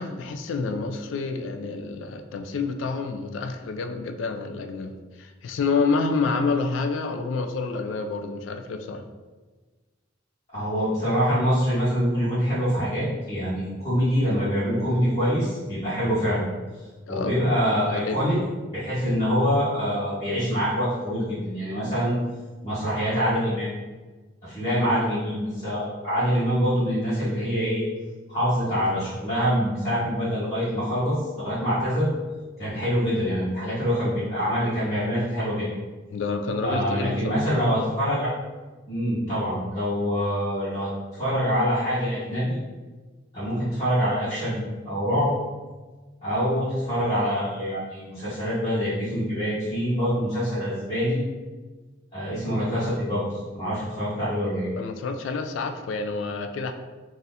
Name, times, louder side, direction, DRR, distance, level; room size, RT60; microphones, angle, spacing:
voice 1, 0.0-9.0 17.1-17.3 17.9-18.2 24.8-25.0 36.1-37.4 54.8-56.7, left 4 dB, 70° left, 6 dB, 0.3 m, -28 dB
voice 2, 10.5-16.4 17.1-18.4 18.7-22.2 22.6-23.7 24.4-27.8 28.3-32.1 32.6-35.7 36.6-38.3 38.9-42.6 43.3-45.3 46.2-51.2 52.1-54.7, equal, 30° left, -13 dB, 1.1 m, -25 dB
2.7 x 2.5 x 3.9 m, 1.3 s
head